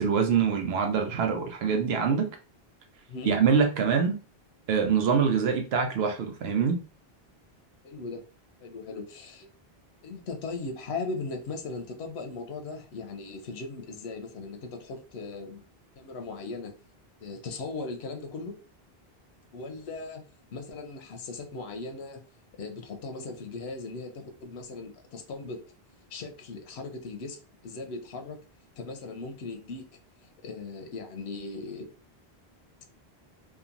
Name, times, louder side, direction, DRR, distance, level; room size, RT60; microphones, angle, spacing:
voice 1, 0.0-2.3 3.3-4.2 4.7-6.8, right 6 dB, 80° right, 0.8 m, -24 dB
voice 2, 7.8-8.2 8.6-9.5 10.0-15.6 16.0-16.7 17.2-18.6 19.5-20.2 20.5-22.2 22.6-25.6 26.1-28.4 28.8-29.8 30.4-31.9, left 3 dB, 85° left, 0.9 m, -38 dB
2.9 x 2.4 x 2.5 m
omnidirectional pair, 1.0 m